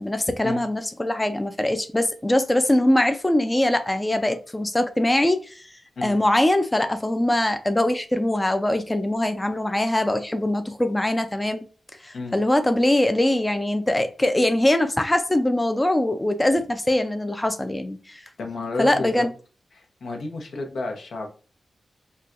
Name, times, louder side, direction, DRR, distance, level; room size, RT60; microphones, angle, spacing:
voice 1, 0.0-5.7 6.0-11.7 12.0-18.2 18.8-19.3, left 1 dB, 20° left, 0.4 m, -22 dB
voice 2, 18.4-19.3 19.7-21.3, left 3 dB, 80° left, 0.7 m, -31 dB
4.1 x 2.2 x 2.4 m
cardioid pair, 50°, 0 cm